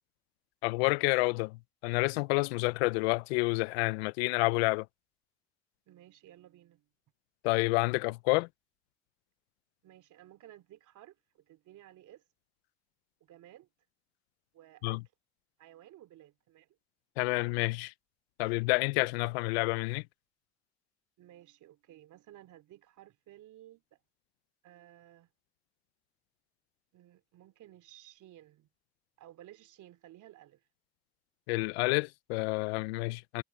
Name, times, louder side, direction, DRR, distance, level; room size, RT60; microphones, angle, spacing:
voice 1, 0.6-1.6 1.8-4.9 7.4-8.5 14.8-15.0 17.2-17.9 18.4-20.0 31.5-33.4, left 24 dB, 90° left, 0.5 m, -29 dB
voice 2, 5.9-6.9 9.8-12.2 13.2-13.7 14.5-15.0 15.6-16.7 21.2-24.0 24.6-25.3 26.9-28.7 29.2-30.6, right 13 dB, 75° right, 2.9 m, -55 dB
hypercardioid pair, 45°, 31 cm